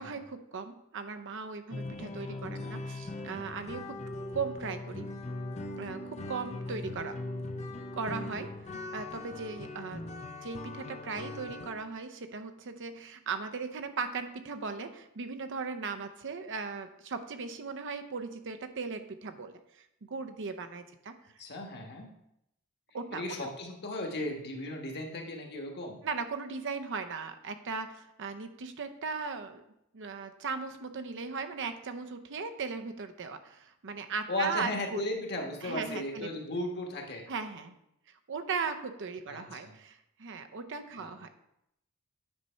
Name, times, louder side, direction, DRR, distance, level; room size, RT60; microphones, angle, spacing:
voice 1, 0.0-4.1 4.3-5.1 5.8-7.2 7.9-8.5 8.9-10.0 10.4-21.2 22.9-23.2 26.0-29.6 29.9-35.0 35.6-36.3 37.3-37.8 38.3-41.3, right 5 dB, 55° right, 8 dB, 0.6 m, -38 dB
sound 1, 1.7-11.7, left 2 dB, 30° left, 0.5 m, -40 dB
voice 2, 2.3-2.8 8.7-8.8 21.4-22.1 23.1-26.0 34.3-37.2 39.3-39.7 41.0-41.2, left 1 dB, 50° left, 2 dB, 1.4 m, -36 dB
9.5 x 4.1 x 5.5 m, 0.80 s
head